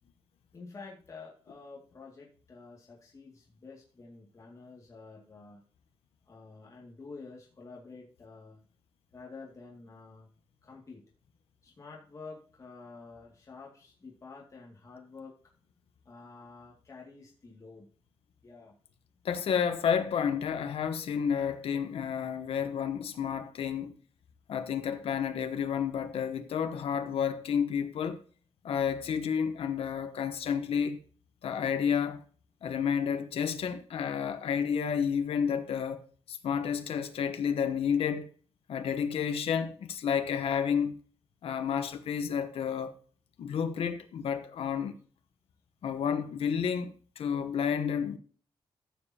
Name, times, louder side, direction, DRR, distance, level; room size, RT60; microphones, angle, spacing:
voice 1, 0.5-5.6 6.3-8.6 9.1-10.3 10.6-11.1 11.6-15.3 16.0-17.9 18.4-18.8, left 4 dB, 35° left, 2.2 m, -49 dB
voice 2, 19.2-23.9 24.5-28.2 28.6-31.0 31.4-32.2 32.6-38.3 38.7-41.0 41.4-42.9 43.4-44.9 45.8-48.2, left 7 dB, 80° left, 1.0 m, -30 dB
14.5 x 7.0 x 2.8 m
wide cardioid pair, 130°, 10 cm